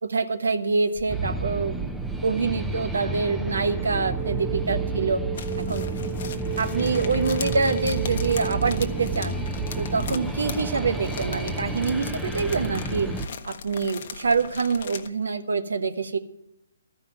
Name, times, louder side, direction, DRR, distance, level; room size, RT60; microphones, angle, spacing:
voice 1, 0.0-1.8 2.2-5.2 5.6-5.9 6.6-9.3 9.8-13.1 13.4-16.2, right 4 dB, 75° right, 10 dB, 1.1 m, -25 dB
sound 1, 1.0-1.7 3.4-11.0, right 6 dB, 25° right, 1.9 m, -37 dB
sound 2, 1.1-13.3, right 3 dB, 5° right, 0.6 m, -30 dB
sound 3, 5.3-15.1, left 6 dB, 50° left, 1.0 m, -39 dB
13.0 x 5.6 x 9.5 m, 0.83 s
figure-of-eight pair, 140°, 0 cm